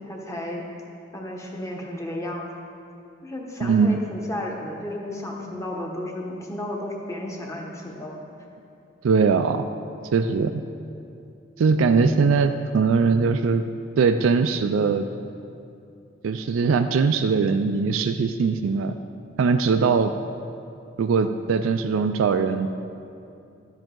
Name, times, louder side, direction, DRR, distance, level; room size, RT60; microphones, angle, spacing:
voice 1, 0.1-0.7 1.1-2.5 3.2-8.2, left 1 dB, 15° left, -1 dB, 1.1 m, -33 dB
voice 2, 3.6-3.9 9.0-9.7 10.1-10.6 11.6-13.6 14.0-15.1 16.2-18.9 19.4-20.1 21.0-22.7, right 5 dB, 85° right, 8 dB, 0.4 m, -21 dB
12.0 x 7.6 x 3.8 m, 2.6 s
head